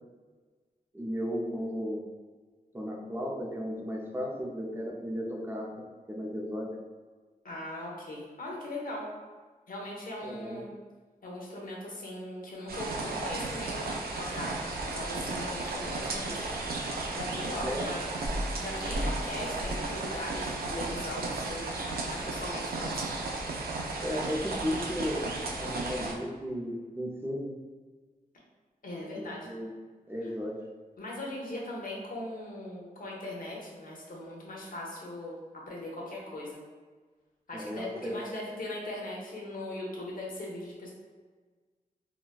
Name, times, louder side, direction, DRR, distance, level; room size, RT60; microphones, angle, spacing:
voice 1, 0.9-2.0 2.7-6.8 10.2-10.6 17.6-17.9 24.0-25.3 25.6-27.6 29.1-29.7 30.1-30.6 37.5-38.2, equal, 15° right, -1 dB, 0.5 m, -35 dB
voice 2, 7.4-9.1 9.7-10.7 11.2-14.5 14.9-16.4 17.1-18.0 18.4-21.7 22.1-23.1 23.9-24.0 28.8-29.5 31.0-35.4 35.7-36.6 37.5-40.9, left 1 dB, 65° left, -3 dB, 0.8 m, -39 dB
sound 1, 12.7-26.1, right 2 dB, 80° right, 0.4 m, -34 dB
3.9 x 2.2 x 2.4 m, 1.4 s
wide cardioid pair, 90°, 15 cm